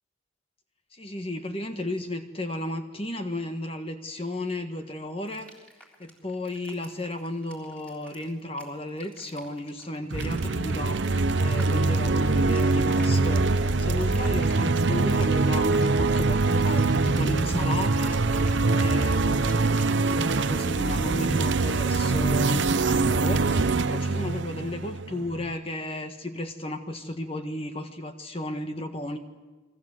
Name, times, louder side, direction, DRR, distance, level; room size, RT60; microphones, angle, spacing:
voice 1, 0.9-5.5 6.0-11.0 11.4-18.2 18.7-19.5 20.0-29.2, left 1 dB, 30° left, 6 dB, 1.5 m, -34 dB
sound 1, 5.3-21.7, equal, 5° left, 3.6 m, -51 dB
sound 2, 10.1-25.5, right 3 dB, 75° right, 0.9 m, -24 dB
28.5 x 22.5 x 7.8 m, 1.3 s
head